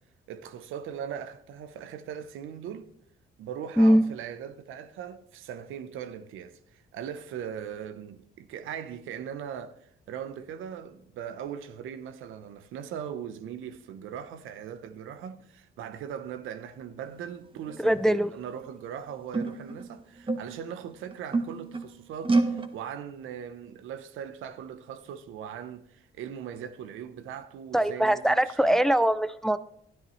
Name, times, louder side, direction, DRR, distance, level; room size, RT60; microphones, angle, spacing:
voice 1, 0.3-2.9 3.4-28.8, right 8 dB, 85° right, 0.8 m, -40 dB
sound 1, 17.5-17.9 18.7-18.8 19.3-20.7 21.1-21.9 22.2-22.7, right 3 dB, 25° right, 1.3 m, -28 dB
voice 2, 17.8-18.3 27.7-29.6, equal, ahead, 0.4 m, -22 dB
12.5 x 10.5 x 3.2 m
cardioid pair, 90°, 20 cm